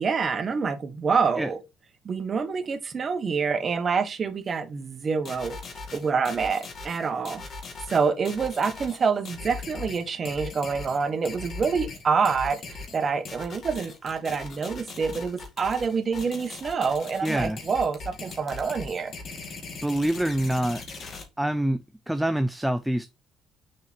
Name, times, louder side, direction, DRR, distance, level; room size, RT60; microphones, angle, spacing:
voice 1, 0.0-1.6 2.0-5.6 5.9-7.4 7.9-12.6 12.9-19.1, right 5 dB, 30° right, 1.2 m, -26 dB
sound 1, 5.2-21.2, left 4 dB, 40° left, 2.2 m, -40 dB
voice 2, 17.2-17.6 19.8-20.8 21.4-23.1, right 1 dB, 5° right, 0.4 m, -26 dB
6.6 x 4.4 x 4.3 m
cardioid pair, 155°, 0 cm